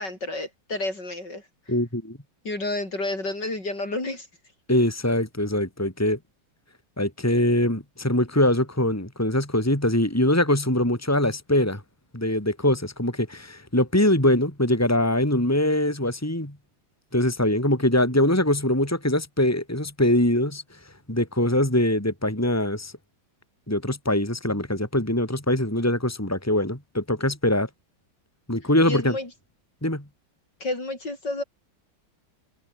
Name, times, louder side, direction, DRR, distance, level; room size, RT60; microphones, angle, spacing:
voice 1, 0.0-1.4 2.4-4.3 28.9-29.3 30.6-31.4, left 2 dB, 55° left, 7.4 m, -30 dB
voice 2, 1.7-2.2 4.7-6.2 7.0-11.8 12.1-16.6 17.1-20.6 21.1-22.9 23.7-27.7 28.5-29.1 29.8-30.0, left 1 dB, 5° left, 4.5 m, -23 dB
omnidirectional pair, 2.2 m